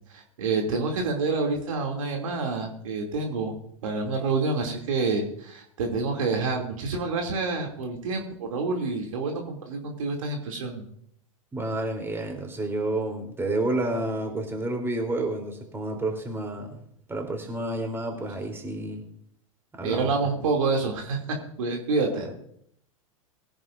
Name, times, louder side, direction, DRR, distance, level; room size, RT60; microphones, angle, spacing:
voice 1, 0.1-3.6 3.8-10.8 19.8-22.3, right 3 dB, 70° right, 2 dB, 2.6 m, -28 dB
voice 2, 11.5-16.8 17.1-19.1 19.7-20.1 22.1-22.3, right 2 dB, 15° right, 3 dB, 3.3 m, -30 dB
21.0 x 10.5 x 2.6 m, 0.68 s
hypercardioid pair, 95°, 18 cm